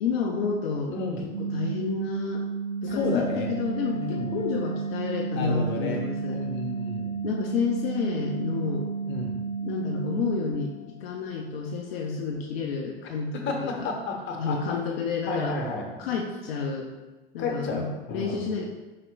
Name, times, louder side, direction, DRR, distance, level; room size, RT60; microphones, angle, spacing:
voice 1, 0.0-1.0 1.4-2.4 2.8-6.4 7.2-8.9 9.6-13.9 14.4-15.5 16.0-16.9 17.3-18.6, left 5 dB, 75° left, 0 dB, 0.6 m, -30 dB
voice 2, 0.9-1.3 2.8-3.5 3.9-4.3 5.3-7.2 9.1-9.4 13.3-14.7 15.2-16.3 17.4-18.5, left 3 dB, 40° left, 1 dB, 1.0 m, -32 dB
sound 1, 1.3-10.5, right 5 dB, 80° right, 0.6 m, -32 dB
sound 2, 2.9-11.9, left 6 dB, 50° right, 0.7 m, -49 dB
4.9 x 4.2 x 2.3 m, 1.2 s
hypercardioid pair, 80°, 30 cm